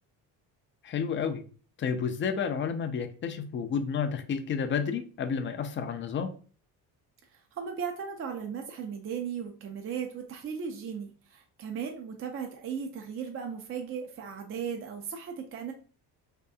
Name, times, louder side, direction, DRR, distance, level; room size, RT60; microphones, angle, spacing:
voice 1, 0.8-1.4 1.8-6.3, left 6 dB, 30° left, 8 dB, 0.4 m, -31 dB
voice 2, 7.3-15.7, right 7 dB, 35° right, 3 dB, 0.4 m, -37 dB
2.8 x 2.3 x 2.2 m, 0.40 s
supercardioid pair, 75°, 41 cm